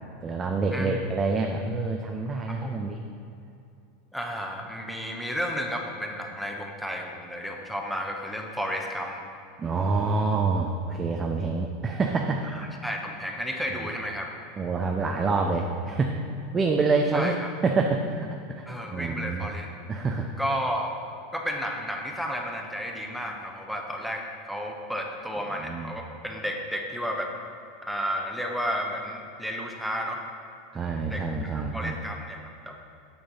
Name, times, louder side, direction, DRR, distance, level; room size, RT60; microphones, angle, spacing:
voice 1, 0.2-3.0 9.6-12.4 14.6-17.3 17.6-19.5 19.9-20.3 25.6-25.9 30.7-32.0, right 4 dB, 25° right, 2 dB, 0.6 m, -27 dB
voice 2, 0.7-1.0 2.5-2.7 4.1-9.2 12.5-14.3 17.1-17.5 18.7-19.7 20.4-20.9 21.3-27.3 27.8-30.2 31.1-32.8, equal, ahead, 1 dB, 1.1 m, -32 dB
9.1 x 6.2 x 4.1 m, 2.7 s
figure-of-eight pair, 80°, 0 cm